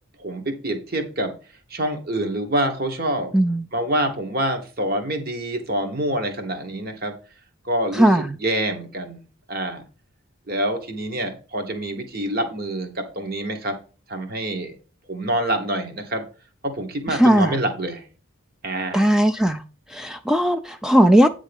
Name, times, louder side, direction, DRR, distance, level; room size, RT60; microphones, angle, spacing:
voice 1, 0.2-1.3 1.7-3.3 3.7-7.1 7.6-8.1 8.4-9.2 9.5-9.8 10.5-13.8 14.1-14.7 15.1-16.2 16.6-18.0 18.6-19.1, right 1 dB, 45° right, 1.2 m, -26 dB
voice 2, 3.3-3.7 7.9-8.4 17.1-17.6 18.9-19.6 19.9-21.3, equal, 5° right, 0.3 m, -17 dB
9.0 x 3.7 x 5.2 m
head